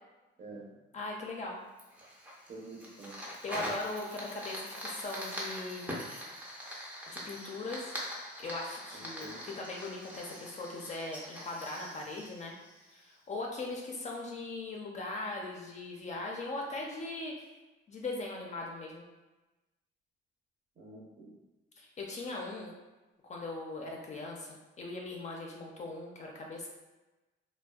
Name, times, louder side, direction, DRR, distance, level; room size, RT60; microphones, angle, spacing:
voice 1, 0.4-0.8 2.5-3.2 8.9-9.4 20.8-21.4, right 2 dB, 45° right, -3 dB, 0.8 m, -48 dB
voice 2, 0.9-1.6 3.4-6.1 7.1-7.9 8.4-12.5 12.9-17.5 17.9-19.1 21.8-22.7 23.2-26.7, left 2 dB, 35° left, -1 dB, 0.5 m, -40 dB
Fire, 1.8-13.2, equal, 5° right, 0.6 m, -43 dB
2.5 x 2.1 x 2.3 m, 1.1 s
cardioid pair, 90°, 20 cm